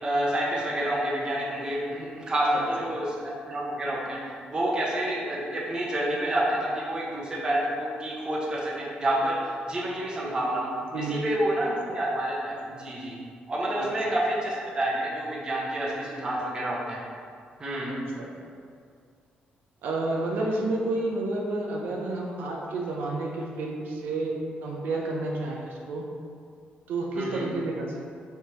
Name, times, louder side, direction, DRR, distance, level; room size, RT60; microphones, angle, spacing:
voice 1, 0.0-4.2 4.5-10.7 11.0-13.2 13.5-17.0 17.6-17.9 27.1-27.4, right 1 dB, 25° right, -5 dB, 0.8 m, -28 dB
voice 2, 19.8-24.3 24.6-26.0 26.9-28.1, right 2 dB, 85° right, -2 dB, 0.6 m, -30 dB
4.9 x 3.3 x 2.8 m, 2.2 s
cardioid pair, 150°, 3 cm